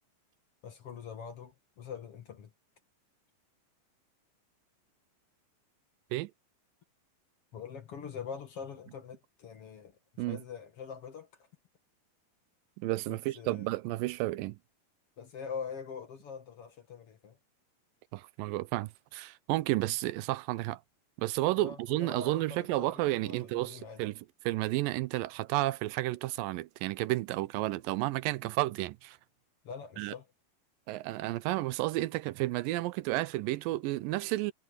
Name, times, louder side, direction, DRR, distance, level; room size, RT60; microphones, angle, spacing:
voice 1, 0.6-2.5 7.5-11.3 13.1-13.7 15.2-17.4 21.5-24.0 29.6-30.3, left 6 dB, 50° left, 2.4 m, -44 dB
voice 2, 12.8-14.6 18.1-20.8 21.2-29.2 30.0-30.1 30.9-34.5, right 18 dB, 85° right, 2.3 m, -32 dB
omnidirectional pair, 3.9 m